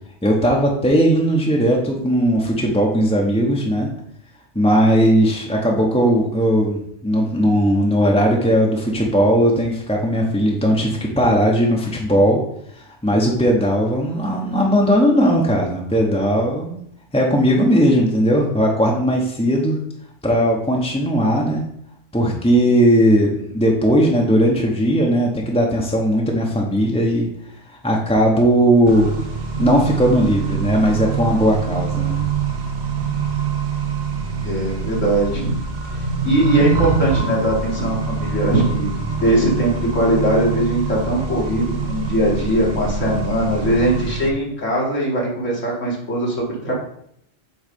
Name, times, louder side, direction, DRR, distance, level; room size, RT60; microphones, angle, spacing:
voice 1, 0.2-3.9 4.5-12.4 13.0-16.8 17.1-19.8 20.2-21.6 22.1-27.3 27.7-29.1 29.6-32.2, equal, 5° left, -2 dB, 0.8 m, -17 dB
Accelerating revving vroom, 28.9-44.3, right 5 dB, 45° right, 0.8 m, -24 dB
voice 2, 34.4-46.7, right 1 dB, 75° left, -3 dB, 2.3 m, -20 dB
7.8 x 3.2 x 5.3 m, 0.70 s
omnidirectional pair, 1.3 m